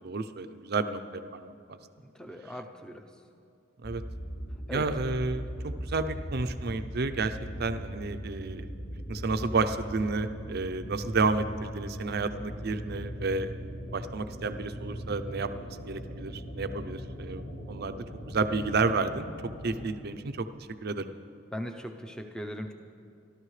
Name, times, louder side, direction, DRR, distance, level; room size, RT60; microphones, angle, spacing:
voice 1, 0.0-1.8 3.8-4.0 4.7-8.7 9.1-13.5 13.9-15.5 15.8-18.0 18.2-19.3 19.6-21.1, right 3 dB, 45° right, 10 dB, 0.5 m, -31 dB
voice 2, 2.0-3.1 4.7-4.9 21.5-22.7, equal, 5° left, 5 dB, 0.6 m, -39 dB
sound 1, 3.8-19.8, equal, 50° left, 3.4 m, -39 dB
25.0 x 13.0 x 3.2 m, 2.5 s
head